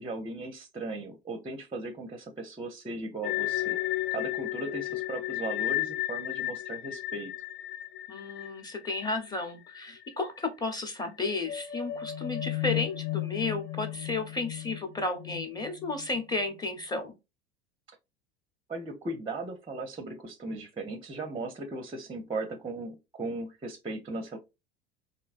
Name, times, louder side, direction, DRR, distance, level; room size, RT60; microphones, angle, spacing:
voice 1, 0.0-3.8 4.1-7.3 18.7-24.4, right 2 dB, 15° right, 0.6 m, -37 dB
sound 1, 3.2-10.1 10.4-10.5 11.0-16.4, left 15 dB, 55° left, 0.5 m, -34 dB
voice 2, 8.1-17.1, left 3 dB, 10° left, 0.9 m, -33 dB
3.2 x 2.7 x 2.4 m
hypercardioid pair, 75°, 32 cm